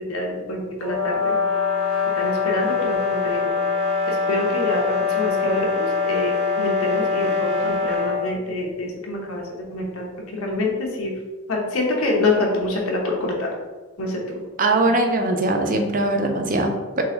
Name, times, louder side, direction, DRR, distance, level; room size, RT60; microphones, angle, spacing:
voice 1, 0.0-1.4 2.1-3.5 4.1-9.4 9.7-11.1 11.5-13.5 14.0-14.4, left 2 dB, 90° left, -1 dB, 1.0 m, -26 dB
sound 1, 0.8-8.3, left 5 dB, 75° right, 1.2 m, -23 dB
voice 2, 14.6-17.0, right 2 dB, 40° right, 4 dB, 0.5 m, -21 dB
3.9 x 3.3 x 3.9 m, 1.3 s
head